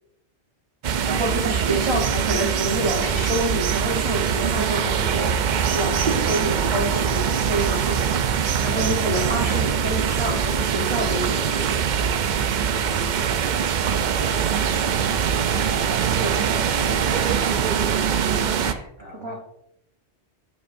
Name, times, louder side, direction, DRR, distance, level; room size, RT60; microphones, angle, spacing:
sound 1, 0.8-18.7, right 7 dB, 60° right, 0.5 m, -23 dB
voice 1, 1.1-5.3 5.7-8.2 8.6-11.8 16.1-16.5 18.6-18.9 19.2-19.3, right 1 dB, 25° right, 1 dB, 1.0 m, -28 dB
voice 2, 1.7-2.0 19.0-19.4, right 1 dB, 90° right, -5 dB, 2.7 m, -42 dB
8.6 x 8.4 x 2.6 m, 0.79 s
omnidirectional pair, 1.2 m